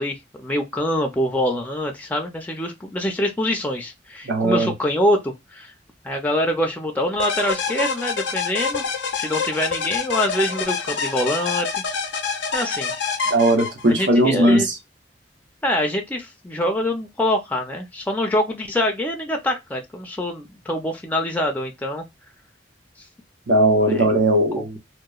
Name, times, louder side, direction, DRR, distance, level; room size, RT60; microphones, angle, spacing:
voice 1, 0.0-5.7 6.0-8.8 9.1-11.7 12.5-12.9 13.9-14.7 15.6-22.0 23.8-24.0 24.6-24.8, left 1 dB, 10° left, 0.4 m, -25 dB
voice 2, 4.3-4.7 13.3-14.7 23.5-24.8, right 1 dB, 90° right, 0.8 m, -18 dB
sound 1, 7.2-14.1, left 5 dB, 80° left, 0.5 m, -26 dB
2.9 x 2.0 x 2.3 m
head